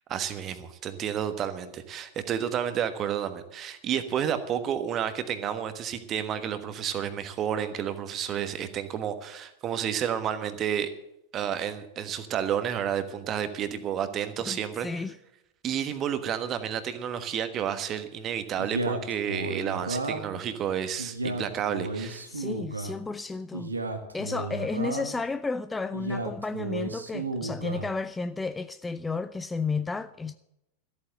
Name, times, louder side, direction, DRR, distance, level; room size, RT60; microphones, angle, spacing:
voice 1, 0.1-10.9 11.3-14.9 15.6-22.3, right 9 dB, 30° right, 1.3 m, -31 dB
voice 2, 14.5-15.2 22.3-23.7 24.1-30.3, left 4 dB, 10° left, 0.4 m, -32 dB
Male speech man speaking, 18.6-20.4 21.0-23.0 23.5-25.2 25.9-27.9, right 2 dB, 80° right, 1.4 m, -33 dB
14.0 x 8.6 x 7.8 m
figure-of-eight pair, 90°, 0 cm